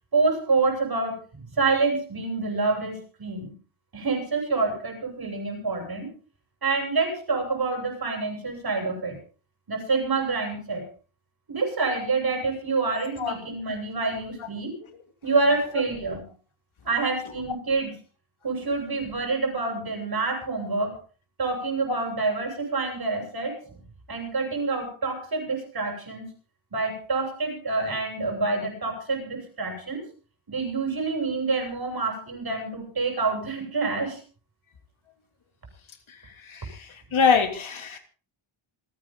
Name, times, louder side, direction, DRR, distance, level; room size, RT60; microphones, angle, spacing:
voice 1, 0.1-3.5 3.9-6.1 6.6-9.2 9.7-10.9 11.5-14.7 15.2-16.2 16.8-17.9 18.4-21.0 21.4-23.8 24.1-26.3 26.7-30.1 30.5-34.2, right 3 dB, 45° right, 2 dB, 7.4 m, -27 dB
voice 2, 36.4-38.0, left 6 dB, 70° left, 5 dB, 3.1 m, -24 dB
27.5 x 9.5 x 3.9 m, 0.37 s
wide cardioid pair, 120°, 49 cm